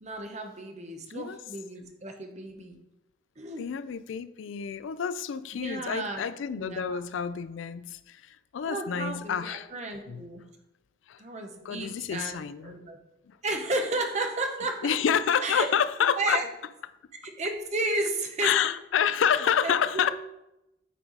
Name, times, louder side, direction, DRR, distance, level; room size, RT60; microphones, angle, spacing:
voice 1, 0.0-2.8 3.4-3.7 5.5-6.2 6.5-7.0 8.7-10.4 11.2-13.0 13.4-14.9 15.4-15.7 16.0-16.5 17.2-18.6 19.6-20.1, right 2 dB, 35° right, 4 dB, 1.0 m, -33 dB
voice 2, 3.6-9.7 10.1-10.2 11.1-11.2 11.6-12.7 14.8-16.4 18.4-20.1, left 8 dB, 75° left, 14 dB, 0.4 m, -28 dB
9.1 x 4.5 x 4.0 m, 0.90 s
head